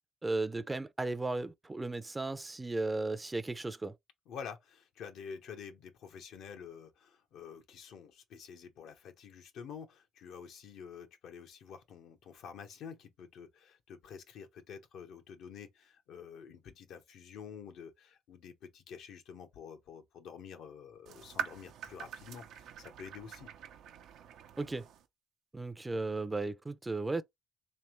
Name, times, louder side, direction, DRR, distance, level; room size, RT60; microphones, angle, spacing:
voice 1, 0.2-3.9 24.6-24.8 25.5-27.2, right 2 dB, 20° right, 0.5 m, -35 dB
voice 2, 4.3-23.5, left 7 dB, 80° left, 1.0 m, -49 dB
sound 1, 21.1-25.1, right 8 dB, 85° right, 0.7 m, -44 dB
3.4 x 3.3 x 3.1 m
cardioid pair, 90°, 0 cm